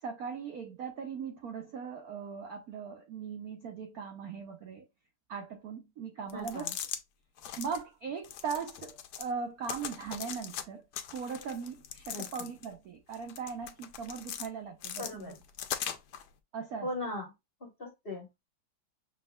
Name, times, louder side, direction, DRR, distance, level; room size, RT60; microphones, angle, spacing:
voice 1, 0.0-4.9 5.3-6.7 7.6-15.3 16.5-16.9, right 6 dB, 70° right, 0.9 m, -39 dB
sound 1, 6.3-7.0 7.4-7.8 8.2-9.3 9.6-10.6 10.9-12.7 13.1-14.5 14.8-16.2, left 9 dB, 75° left, 0.9 m, -40 dB
voice 2, 6.3-6.7 12.1-12.3 15.0-15.3 16.8-17.3 17.6-18.4, left 1 dB, 40° left, 0.8 m, -38 dB
6.5 x 3.6 x 2.2 m
omnidirectional pair, 2.4 m